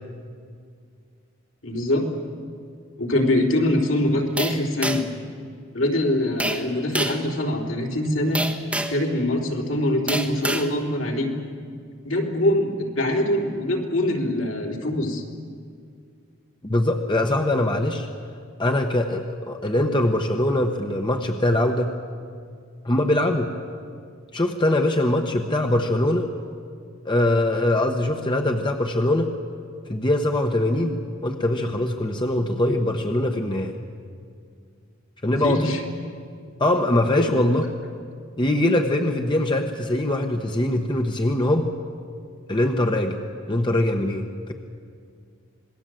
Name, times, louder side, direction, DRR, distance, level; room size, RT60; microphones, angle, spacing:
voice 1, 1.6-2.1 3.0-5.1 5.7-8.4 8.9-11.3 12.0-15.2 35.3-35.8 37.2-37.4, left 1 dB, 70° left, 0 dB, 3.6 m, -23 dB
sound 1, 4.4-5.2 6.4-6.6 6.9-7.2 8.3-9.0 10.1-10.7, right 1 dB, 5° right, 1.3 m, -27 dB
voice 2, 16.6-18.1 18.6-21.9 22.8-23.5 24.3-26.3 27.0-29.3 29.9-33.7 35.2-35.8 36.6-37.7 38.4-41.7 42.5-43.2 43.5-44.5, left 1 dB, 25° left, 3 dB, 1.1 m, -22 dB
27.0 x 20.0 x 7.7 m, 2.2 s
head